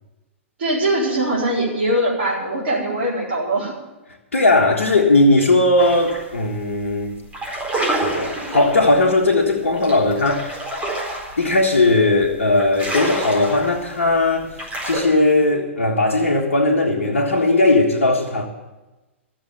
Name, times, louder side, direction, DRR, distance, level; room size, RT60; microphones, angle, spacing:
voice 1, 0.6-3.7, right 1 dB, 55° right, -4 dB, 4.4 m, -21 dB
voice 2, 4.3-7.2 8.0-10.6 11.4-14.5 14.8-18.5, left 2 dB, 70° left, -3 dB, 1.6 m, -18 dB
sound 1, 5.8-6.3 6.6-6.9 7.2-15.0, right 1 dB, 15° right, 4.3 m, -27 dB
13.5 x 7.4 x 9.4 m, 1.1 s
figure-of-eight pair, 110°, 7 cm